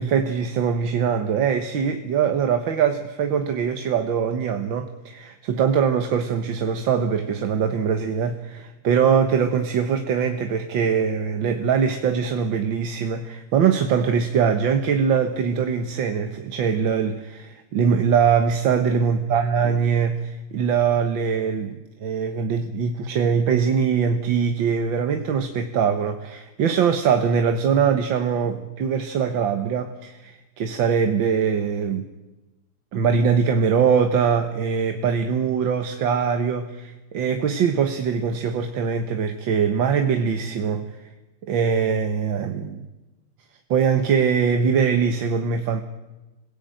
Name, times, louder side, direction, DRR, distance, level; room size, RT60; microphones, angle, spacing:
voice 1, 0.0-32.1 32.9-41.1 41.5-42.9 43.7-45.8, right 6 dB, 65° right, 7 dB, 1.8 m, -22 dB
26.5 x 17.0 x 9.1 m, 1.1 s
omnidirectional pair, 2.4 m